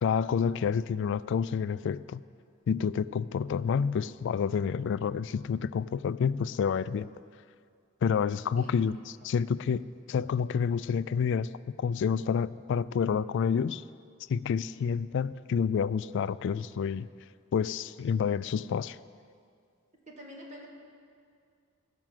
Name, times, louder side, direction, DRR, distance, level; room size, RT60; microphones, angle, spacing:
voice 1, 0.0-2.2 2.7-7.1 8.0-9.8 10.1-11.5 11.8-13.8 14.3-17.1 17.5-19.0, left 6 dB, 60° left, 17 dB, 0.3 m, -29 dB
voice 2, 20.1-20.7, equal, 35° right, -1 dB, 2.1 m, -46 dB
15.5 x 6.2 x 7.5 m, 2.2 s
head